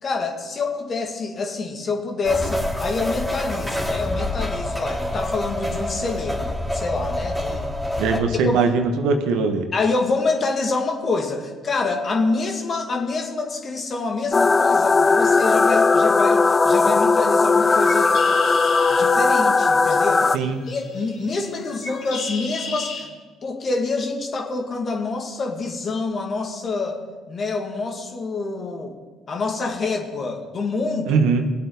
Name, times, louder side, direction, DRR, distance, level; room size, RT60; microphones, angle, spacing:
voice 1, 0.0-6.5 6.7-7.7 8.4-8.6 9.7-18.2 18.9-20.3 20.7-23.1 23.4-27.0 27.3-29.0 29.3-31.2, left 3 dB, 45° left, 2 dB, 2.2 m, -26 dB
sound 1, 2.2-8.2, left 1 dB, 5° left, 2.6 m, -26 dB
voice 2, 8.0-9.7 20.3-20.6 31.1-31.5, right 4 dB, 70° right, 6 dB, 1.2 m, -21 dB
sound 2, 14.3-20.4, left 4 dB, 30° left, 0.5 m, -17 dB
Bird, 17.5-23.0, left 3 dB, 70° left, 3.4 m, -36 dB
21.5 x 8.4 x 4.1 m, 1.4 s
hypercardioid pair, 55°, 0 cm